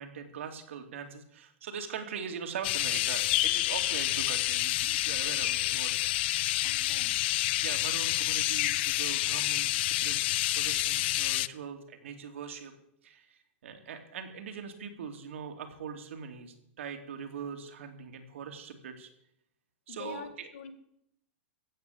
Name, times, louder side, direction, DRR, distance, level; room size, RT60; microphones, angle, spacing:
voice 1, 0.0-6.0 7.6-10.2 10.5-12.7 13.0-19.1 19.9-20.5, right 7 dB, 80° right, 5 dB, 2.7 m, -41 dB
sound 1, 2.6-11.5, left 16 dB, 55° left, 0.5 m, -28 dB
voice 2, 6.6-7.3 19.9-20.7, left 7 dB, 75° left, 10 dB, 2.0 m, -45 dB
16.0 x 8.1 x 8.6 m, 0.73 s
supercardioid pair, 145°, 7 cm